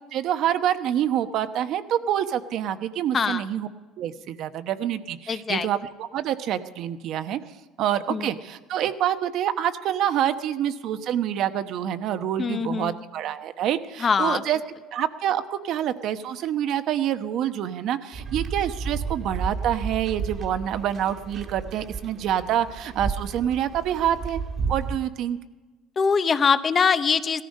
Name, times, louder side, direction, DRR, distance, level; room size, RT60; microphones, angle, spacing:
voice 1, 0.1-3.7 4.0-7.4 7.8-14.6 14.9-24.4 24.7-25.4, right 10 dB, 55° right, 9 dB, 1.0 m, -27 dB
voice 2, 5.3-5.7 8.1-8.3 12.4-13.0 14.0-14.4 26.0-27.4, left 5 dB, 25° left, 12 dB, 0.8 m, -23 dB
sound 1, 18.1-25.0, right 5 dB, 40° right, 1.6 m, -32 dB
17.5 x 14.0 x 5.4 m, 1.3 s
cardioid pair, 130°, 0 cm